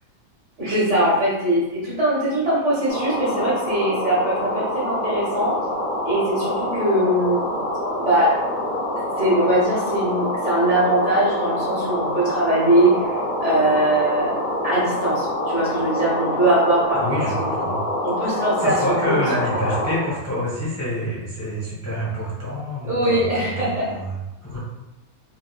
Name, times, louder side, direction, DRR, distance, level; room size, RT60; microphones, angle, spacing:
voice 1, 0.6-5.5 6.0-7.5 8.0-8.4 9.2-13.1 13.4-14.3 14.6-17.1 17.4-17.5 18.0-19.2 22.9-23.9, right 1 dB, 55° right, -7 dB, 1.8 m, -21 dB
sound 1, 2.9-20.0, left 1 dB, 45° left, 1.2 m, -26 dB
voice 2, 16.9-17.8 18.3-24.6, equal, 10° left, -8 dB, 1.1 m, -27 dB
4.5 x 3.6 x 2.4 m, 1.0 s
omnidirectional pair, 1.6 m